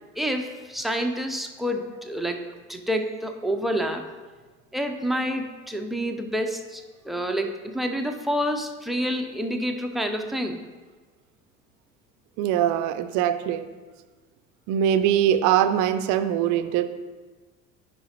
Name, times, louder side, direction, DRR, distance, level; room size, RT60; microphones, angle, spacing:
voice 1, 0.2-2.4 2.7-4.0 4.7-10.6, equal, ahead, 3 dB, 0.6 m, -28 dB
voice 2, 12.4-13.6 14.7-16.8, right 10 dB, 45° right, 10 dB, 0.6 m, -22 dB
9.3 x 5.5 x 2.9 m, 1.3 s
figure-of-eight pair, 65°, 40 cm